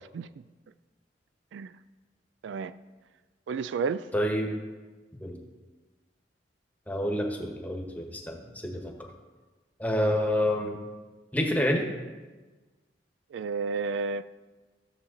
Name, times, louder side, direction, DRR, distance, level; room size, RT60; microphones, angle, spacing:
voice 1, 3.5-4.1 13.3-14.2, right 5 dB, 85° right, 0.3 m, -31 dB
voice 2, 4.1-4.5 5.2-5.4 6.9-8.9 9.8-10.8 11.3-11.9, equal, 10° left, 1.2 m, -28 dB
13.0 x 7.2 x 3.8 m
head